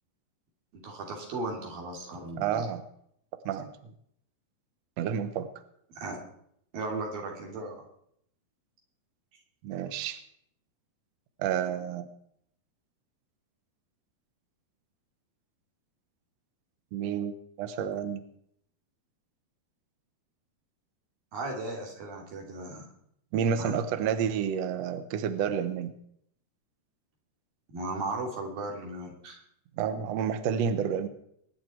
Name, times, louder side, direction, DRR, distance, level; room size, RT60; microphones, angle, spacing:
voice 1, 0.7-2.6 6.0-6.2 6.7-7.8 21.3-22.8 23.6-23.7 27.7-29.4, right 2 dB, 60° right, 0 dB, 4.8 m, -36 dB
voice 2, 2.4-2.8 3.4-3.7 5.0-5.5 9.6-10.2 11.4-12.1 16.9-18.2 23.3-25.9 29.8-31.1, right 7 dB, 85° right, 10 dB, 1.5 m, -30 dB
23.0 x 10.5 x 4.6 m, 0.70 s
omnidirectional pair, 4.6 m